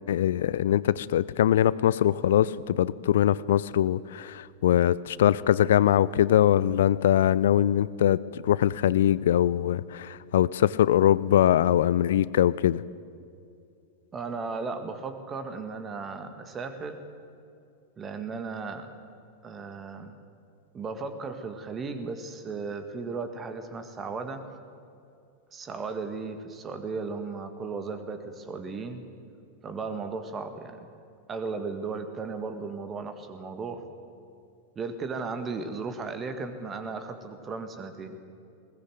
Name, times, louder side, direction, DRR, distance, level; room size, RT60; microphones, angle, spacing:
voice 1, 0.1-12.8, left 11 dB, 60° left, 20 dB, 0.5 m, -22 dB
voice 2, 14.1-17.0 18.0-18.9 19.4-20.2 20.7-24.4 25.5-29.0 29.6-30.8 31.3-33.8 34.7-38.3, right 4 dB, 20° right, 8 dB, 1.8 m, -35 dB
20.0 x 19.5 x 7.8 m, 2.5 s
figure-of-eight pair, 90°, 0 cm